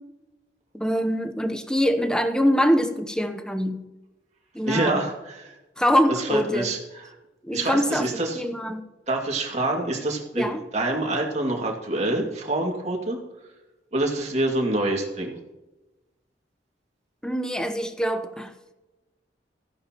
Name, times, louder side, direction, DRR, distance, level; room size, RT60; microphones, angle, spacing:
voice 1, 0.7-3.9 4.5-5.0 5.8-6.7 7.4-8.9 10.3-10.6 17.2-18.5, equal, 5° left, 8 dB, 0.8 m, -24 dB
voice 2, 4.6-5.5 6.2-6.8 7.5-8.4 9.1-13.2 13.9-15.4, right 2 dB, 40° right, 0 dB, 2.2 m, -26 dB
15.0 x 10.5 x 2.9 m, 1.1 s
head